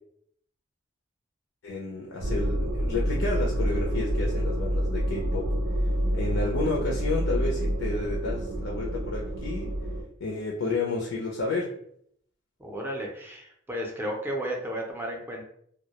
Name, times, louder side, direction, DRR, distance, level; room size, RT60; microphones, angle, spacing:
voice 1, 1.6-5.5 6.1-9.7 10.2-11.7, left 3 dB, 80° left, -1 dB, 0.4 m, -31 dB
sound 1, 2.2-10.0, equal, 75° right, 0.5 m, -28 dB
voice 2, 12.6-15.4, equal, 10° right, -1 dB, 0.4 m, -33 dB
2.1 x 2.0 x 2.8 m, 0.67 s
head